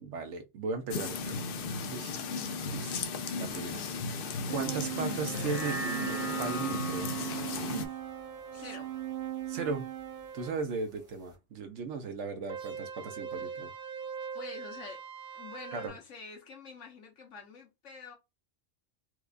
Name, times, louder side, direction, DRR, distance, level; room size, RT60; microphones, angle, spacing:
voice 1, 0.0-1.4 1.8-2.1 2.7-3.0 3.4-6.1 6.4-7.1 7.7-7.9 9.5-9.9 10.3-13.7 15.7-15.9, right 4 dB, 80° right, 1.1 m, -37 dB
sound 1, 0.9-7.9, left 4 dB, 60° left, 0.6 m, -36 dB
sound 2, 4.5-10.6 12.5-15.9, right 10 dB, 60° right, 0.5 m, -39 dB
sound 3, 5.2-9.8 10.2-10.3, equal, 5° right, 0.8 m, -42 dB
voice 2, 8.5-8.9 13.3-13.6 14.3-15.0 15.3-18.2, left 5 dB, 80° left, 1.3 m, -47 dB
4.6 x 2.3 x 2.4 m
omnidirectional pair, 1.2 m